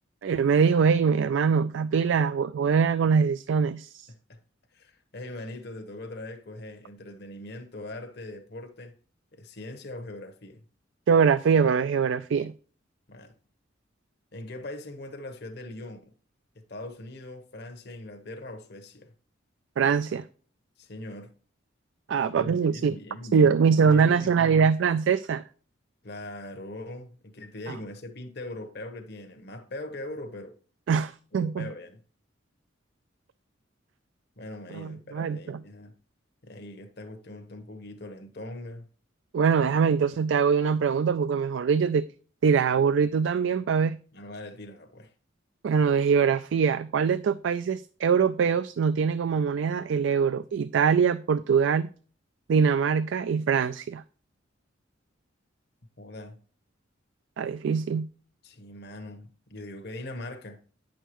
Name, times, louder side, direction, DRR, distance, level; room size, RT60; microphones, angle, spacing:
voice 1, 0.2-4.1 11.1-12.5 19.8-20.2 22.1-22.9 23.3-25.4 30.9-31.7 34.7-35.6 39.3-42.1 42.4-44.0 45.6-51.9 52.5-54.0 57.4-58.1, right 6 dB, 70° right, 0.3 m, -23 dB
voice 2, 4.1-4.4 4.7-8.9 9.3-10.6 13.1-13.3 14.3-16.1 16.6-19.1 20.8-21.3 22.1-24.7 26.0-30.5 31.3-32.0 34.4-35.9 36.4-38.9 44.1-45.1 56.0-56.4 58.4-60.6, left 1 dB, 55° left, 1.0 m, -41 dB
9.0 x 6.5 x 3.0 m
head